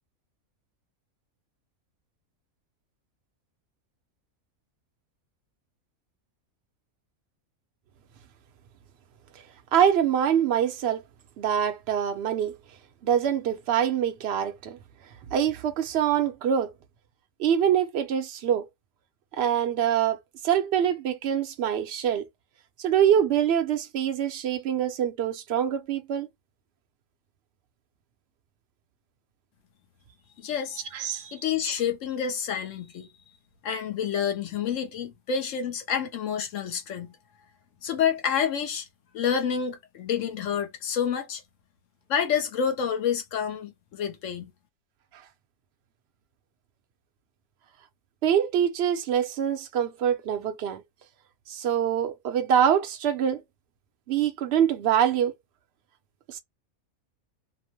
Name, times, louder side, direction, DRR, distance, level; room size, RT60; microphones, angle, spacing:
voice 1, 9.7-11.0 11.4-12.5 13.0-14.8 15.3-16.7 17.4-18.6 19.3-22.2 22.8-26.3 30.9-31.3 48.2-50.8 51.5-53.4 54.1-55.3 56.3-56.4, right 9 dB, 60° right, 0.7 m, -24 dB
voice 2, 30.4-30.8 31.3-33.1 33.6-37.1 37.8-38.9 39.1-41.4 42.1-44.5, left 7 dB, 65° left, 1.0 m, -28 dB
2.9 x 2.1 x 2.9 m
omnidirectional pair, 1.5 m